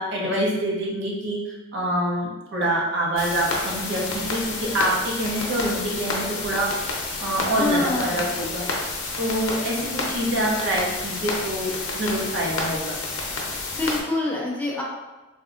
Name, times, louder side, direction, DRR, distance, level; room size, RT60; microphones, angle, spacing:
voice 1, 0.0-1.4 1.7-6.7 7.2-8.8 9.2-13.0, right 1 dB, 60° right, -3 dB, 0.8 m, -26 dB
sound 1, 3.2-14.0, left 3 dB, 85° left, 0.6 m, -30 dB
voice 2, 7.5-8.3 13.7-14.8, left 2 dB, 10° left, -4 dB, 0.5 m, -25 dB
3.4 x 2.6 x 2.5 m, 1.1 s
head